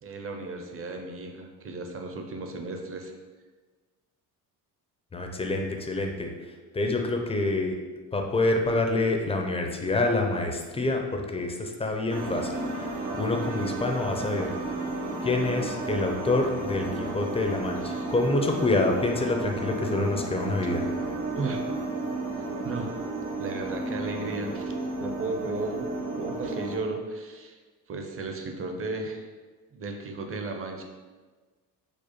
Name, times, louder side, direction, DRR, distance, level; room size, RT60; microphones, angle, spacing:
voice 1, 0.0-3.1 13.4-13.5 17.8-18.1 21.3-21.7 22.6-23.0 23.4-24.7 25.0-25.9 26.2-27.6 27.9-29.3 29.7-30.8, right 3 dB, 35° right, 3 dB, 0.6 m, -34 dB
voice 2, 5.1-6.3 6.7-7.8 8.1-14.5 15.2-20.9, left 2 dB, 15° left, 3 dB, 0.4 m, -27 dB
sound 1, 12.1-26.8, right 2 dB, 90° right, 0.8 m, -33 dB
4.9 x 2.1 x 2.9 m, 1.4 s
cardioid pair, 90°, 38 cm